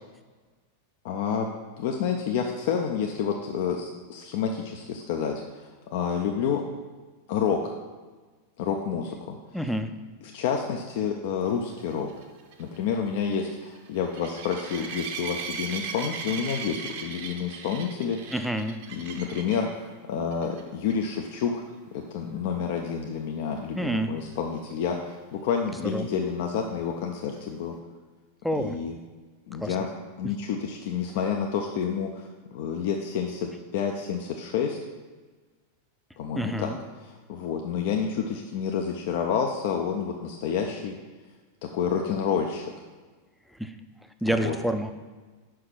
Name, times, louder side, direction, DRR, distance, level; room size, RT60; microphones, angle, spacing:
voice 1, 1.0-1.5 1.8-6.6 7.3-7.7 8.6-9.4 10.3-12.1 12.6-18.3 18.9-21.6 21.9-27.7 28.6-28.9 29.5-29.9 30.2-34.8 36.2-41.0 41.7-42.7 44.3-44.6, left 7 dB, 50° left, 2 dB, 0.5 m, -29 dB
voice 2, 9.5-9.9 18.3-18.8 23.7-24.1 25.9-26.1 28.4-28.8 29.6-29.8 36.4-36.8 43.6-43.8 44.2-44.9, right 1 dB, ahead, 7 dB, 0.5 m, -28 dB
sound 1, 11.8-19.7 20.3-20.6 20.9-21.0 21.4-21.5 25.1-25.2, right 5 dB, 50° right, 0.7 m, -38 dB
5.7 x 4.7 x 6.0 m, 1.3 s
figure-of-eight pair, 90°, 0 cm